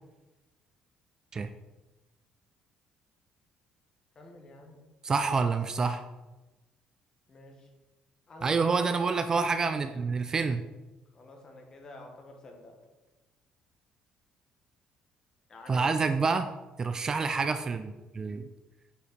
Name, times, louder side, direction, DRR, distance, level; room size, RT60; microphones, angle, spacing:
voice 1, 4.1-4.9 7.3-7.7 8.3-9.0 11.1-12.8 15.5-15.9, left 2 dB, 30° left, 2 dB, 1.5 m, -48 dB
voice 2, 5.0-6.0 8.4-10.6 15.7-16.5 16.8-18.5, right 4 dB, 30° right, 9 dB, 0.4 m, -28 dB
8.3 x 4.8 x 4.2 m, 1.1 s
cardioid pair, 140°, 2 cm